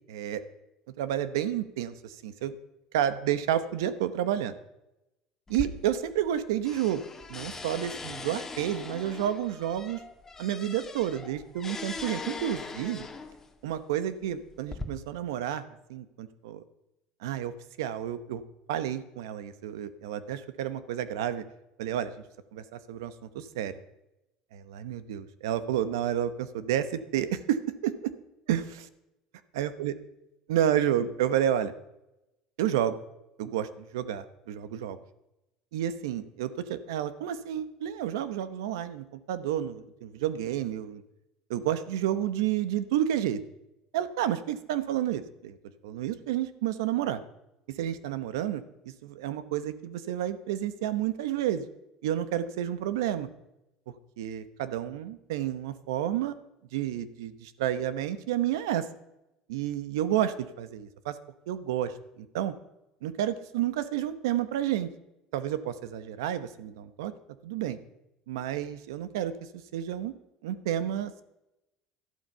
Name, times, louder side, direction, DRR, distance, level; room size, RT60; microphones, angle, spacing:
voice 1, 0.1-0.4 1.0-2.5 2.9-4.5 5.5-7.0 7.3-10.0 10.4-13.1 13.6-15.6 15.9-16.6 17.2-17.5 17.8-18.4 18.7-21.4 21.8-22.1 22.5-23.8 24.5-28.1 28.5-28.9 29.5-29.9 30.5-31.7 32.6-33.0 33.4-35.0 35.7-41.0 41.5-43.4 43.9-45.6 45.8-47.2 47.8-51.6 52.0-53.3 54.2-56.3 56.7-58.9 59.5-61.1 61.5-61.9 62.3-62.5 63.0-64.9 65.3-67.1 67.4-67.8 68.3-69.3 69.7-70.1 70.4-71.2, right 11 dB, 90° right, 13 dB, 1.0 m, -30 dB
sound 1, 5.5-6.4 6.7-13.5 14.2-14.8, left 4 dB, 20° left, 1.6 m, -40 dB
13.0 x 11.5 x 5.6 m, 0.90 s
supercardioid pair, 100°, 2 cm